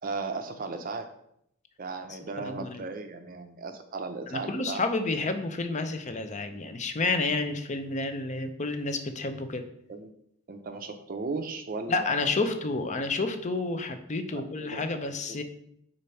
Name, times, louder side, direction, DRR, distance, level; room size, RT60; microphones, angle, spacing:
voice 1, 0.0-1.1 1.8-4.8 9.9-10.1 10.5-12.8 14.3-15.4, right 4 dB, 40° right, 6 dB, 0.5 m, -36 dB
voice 2, 2.4-2.8 4.3-9.6 11.9-15.4, left 3 dB, 35° left, 8 dB, 0.6 m, -30 dB
5.0 x 4.1 x 5.6 m, 0.73 s
head